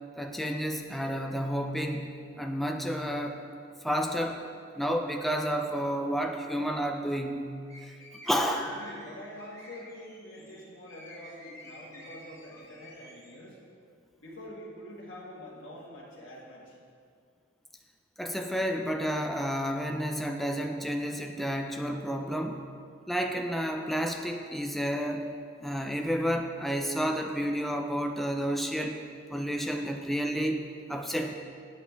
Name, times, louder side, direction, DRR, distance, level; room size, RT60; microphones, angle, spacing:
voice 1, 0.2-3.4 3.8-4.4 4.8-7.5 8.3-8.7 18.2-22.6 23.1-25.3 25.6-29.0 29.3-30.6 30.9-31.3, equal, ahead, 3 dB, 0.4 m, -30 dB
sound 1, 7.7-13.3, left 1 dB, 20° left, 1.7 m, -49 dB
voice 2, 8.6-13.6 14.2-16.8, equal, 65° left, -6 dB, 1.6 m, -46 dB
8.3 x 7.7 x 4.5 m, 2.2 s
head